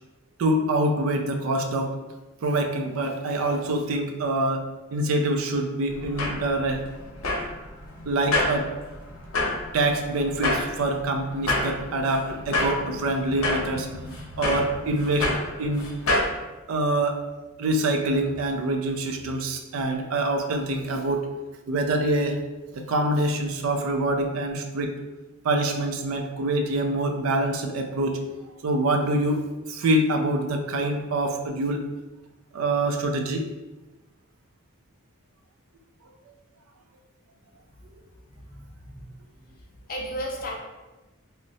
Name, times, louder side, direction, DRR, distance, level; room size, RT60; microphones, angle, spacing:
voice 1, 0.4-1.9 2.4-6.8 8.1-8.6 9.7-15.9 16.7-17.2 17.6-21.3 21.7-22.4 22.7-25.0 25.4-28.2 28.6-31.8 32.5-33.5, right 1 dB, 80° right, 5 dB, 0.4 m, -25 dB
sound 1, 5.9-16.3, left 2 dB, 80° left, 0.7 m, -29 dB
voice 2, 38.3-39.1 39.8-40.6, equal, 40° left, -1 dB, 0.6 m, -34 dB
2.7 x 2.0 x 3.9 m, 1.1 s
head